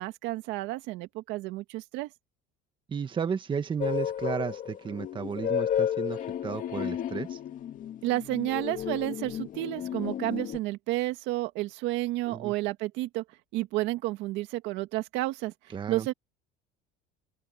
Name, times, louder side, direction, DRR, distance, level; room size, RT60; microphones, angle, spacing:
voice 1, 0.0-2.1 8.0-13.2 13.5-16.1, right 17 dB, 75° right, 1.8 m, -31 dB
voice 2, 2.9-7.4 12.3-12.5 15.7-16.1, right 6 dB, 25° right, 1.5 m, -33 dB
sound 1, 3.8-10.6, left 9 dB, 45° left, 1.8 m, -32 dB
open air
cardioid pair, 135°, 19 cm